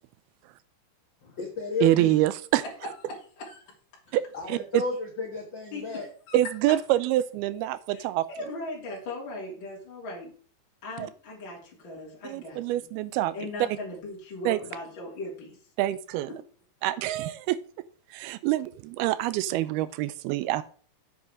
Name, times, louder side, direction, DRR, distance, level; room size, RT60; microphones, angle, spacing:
voice 1, 1.2-2.2 4.1-6.1, left 4 dB, 70° left, 1.1 m, -33 dB
voice 2, 1.8-2.6 4.1-4.8 6.3-8.3 11.0-11.1 12.2-13.3 14.5-14.6 15.8-16.3 16.8-17.6 18.1-20.6, right 14 dB, 85° right, 2.6 m, -26 dB
voice 3, 7.9-10.3 10.8-12.9 13.3-15.6, left 2 dB, 30° left, 3.5 m, -39 dB
8.1 x 7.8 x 4.7 m
omnidirectional pair, 4.4 m